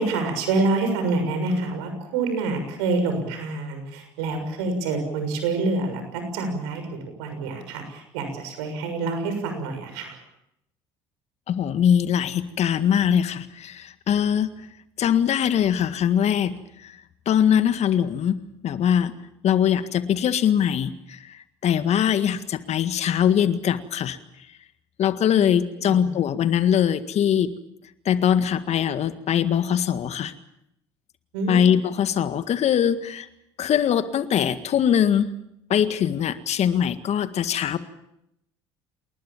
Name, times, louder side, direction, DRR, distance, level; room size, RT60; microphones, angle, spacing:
voice 1, 0.0-10.2 25.3-25.5 25.8-26.1 31.3-31.8, right 3 dB, 80° right, 6 dB, 6.6 m, -27 dB
voice 2, 11.5-14.5 15.0-16.5 16.8-16.9 17.3-19.1 19.4-21.4 21.6-24.2 25.0-27.5 28.1-30.3 31.5-33.3 33.6-35.3 35.7-37.8, left 9 dB, 55° left, 11 dB, 1.8 m, -22 dB
28.0 x 20.0 x 7.3 m, 0.82 s
hypercardioid pair, 65°, 14 cm